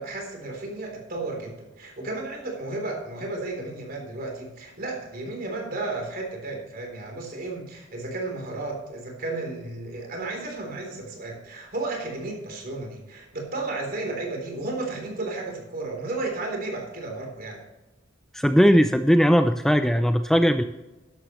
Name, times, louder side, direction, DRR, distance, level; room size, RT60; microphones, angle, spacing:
voice 1, 0.0-17.6, right 2 dB, 50° right, 1 dB, 3.5 m, -33 dB
voice 2, 18.3-20.6, equal, ahead, 8 dB, 0.4 m, -19 dB
13.0 x 11.5 x 3.1 m, 1.0 s
head